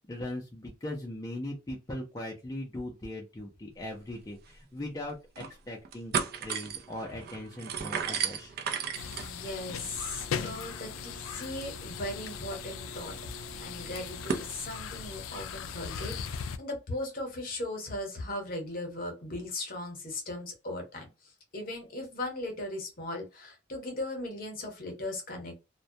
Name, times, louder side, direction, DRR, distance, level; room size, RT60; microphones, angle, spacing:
voice 1, 0.1-6.1 6.4-8.5, left 1 dB, 20° left, -1 dB, 0.4 m, -39 dB
sound 1, 4.1-4.2 4.5-4.6 5.1-5.5 5.8-14.5, right 6 dB, 50° right, 0.4 m, -37 dB
sound 2, 8.9-16.6, left 7 dB, 90° left, 0.3 m, -39 dB
voice 2, 9.1-21.1 21.5-25.6, left 1 dB, 45° left, 3 dB, 0.9 m, -38 dB
2.2 x 2.1 x 2.6 m, 0.27 s
head